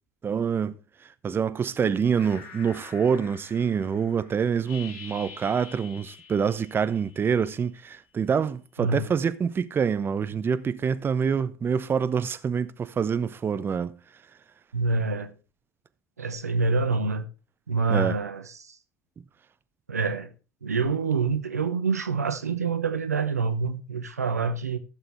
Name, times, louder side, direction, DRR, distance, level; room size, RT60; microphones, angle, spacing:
voice 1, 0.2-14.0 17.9-18.2, right 6 dB, 25° right, 0.8 m, -26 dB
sound 1, 2.1-7.6, left 6 dB, 65° left, 1.9 m, -47 dB
voice 2, 8.8-9.1 14.7-15.3 16.2-17.2 17.7-18.8 19.9-20.3 20.6-24.8, right 4 dB, 85° right, 0.9 m, -26 dB
16.0 x 6.8 x 3.4 m
figure-of-eight pair, 65°, 8 cm